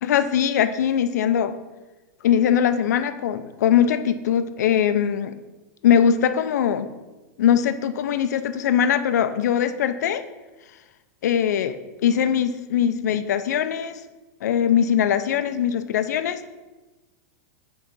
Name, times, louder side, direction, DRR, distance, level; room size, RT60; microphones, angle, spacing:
voice 1, 0.0-1.6 2.2-5.3 5.8-6.9 7.4-10.3 11.2-14.0 14.4-16.5, left 9 dB, 70° left, 11 dB, 0.5 m, -21 dB
8.1 x 3.8 x 5.4 m, 1.2 s
supercardioid pair, 175°, 9 cm